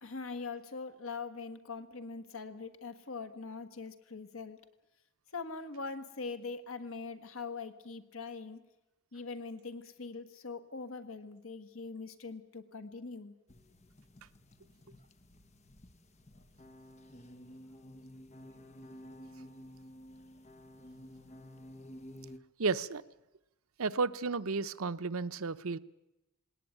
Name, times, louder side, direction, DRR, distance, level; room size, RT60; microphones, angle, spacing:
voice 1, 0.0-4.6 5.3-8.6 9.1-13.3, left 4 dB, 75° left, 1.6 m, -42 dB
sound 1, 13.5-22.4, equal, 30° left, 1.1 m, -52 dB
voice 2, 22.6-23.0 23.8-25.8, right 4 dB, 85° right, 0.8 m, -32 dB
20.5 x 18.0 x 9.1 m
head